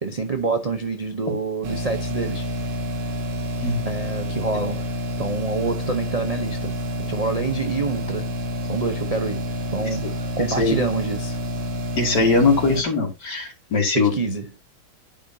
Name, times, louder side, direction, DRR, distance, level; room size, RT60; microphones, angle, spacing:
voice 1, 0.0-2.5 3.8-8.3 8.7-11.4 13.9-14.5, right 4 dB, 65° right, 0.3 m, -27 dB
sound 1, 1.6-12.8, left 1 dB, 80° right, 1.9 m, -28 dB
voice 2, 12.0-14.1, left 3 dB, 70° left, 3.0 m, -21 dB
11.0 x 5.0 x 2.7 m
omnidirectional pair, 1.9 m